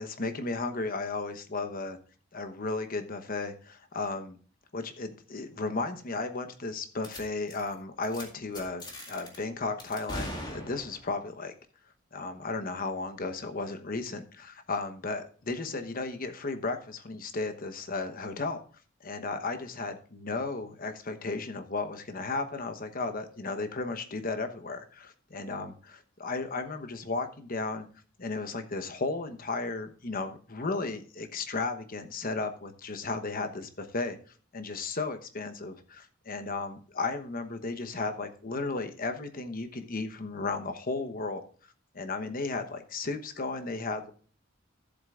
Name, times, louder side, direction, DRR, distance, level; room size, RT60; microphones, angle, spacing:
voice 1, 0.0-2.0 2.3-4.4 4.7-11.5 12.1-18.6 19.0-27.9 28.2-34.2 34.5-41.4 41.9-44.1, left 3 dB, 45° left, 8 dB, 1.0 m, -34 dB
sound 1, 7.0-7.2 7.5-7.7 8.0-8.2 8.5-9.4 9.8-11.1, left 1 dB, 20° left, 2.0 m, -40 dB
13.5 x 7.7 x 2.4 m, 0.40 s
head